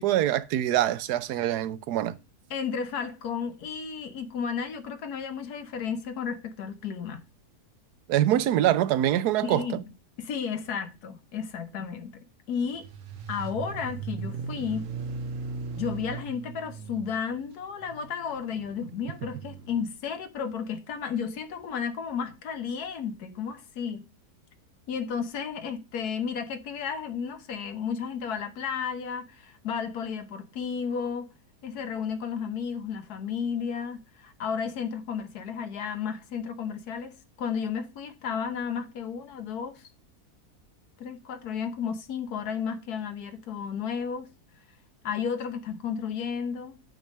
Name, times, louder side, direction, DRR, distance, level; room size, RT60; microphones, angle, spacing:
voice 1, 0.0-2.2 8.1-9.7, right 12 dB, 80° right, 1.1 m, -24 dB
voice 2, 2.5-7.2 9.4-9.8 10.2-12.8 13.3-14.9 15.8-24.0 24.9-31.3 31.6-39.8 41.0-44.3 45.0-46.8, left 6 dB, 75° left, 1.5 m, -33 dB
sound 1, 12.7-19.8, right 5 dB, 60° right, 1.1 m, -38 dB
8.5 x 3.3 x 6.3 m
omnidirectional pair, 1.7 m